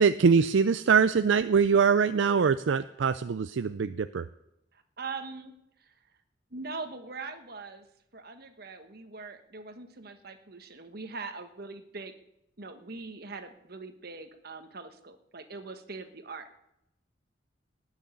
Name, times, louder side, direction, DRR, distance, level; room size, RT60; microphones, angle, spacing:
voice 1, 0.0-4.2, right 6 dB, 75° right, 12 dB, 0.4 m, -23 dB
voice 2, 4.7-5.5 5.8-6.0 6.5-7.9 8.1-12.1 12.6-16.5, right 4 dB, 55° right, 8 dB, 1.3 m, -42 dB
18.5 x 6.4 x 8.8 m, 0.84 s
head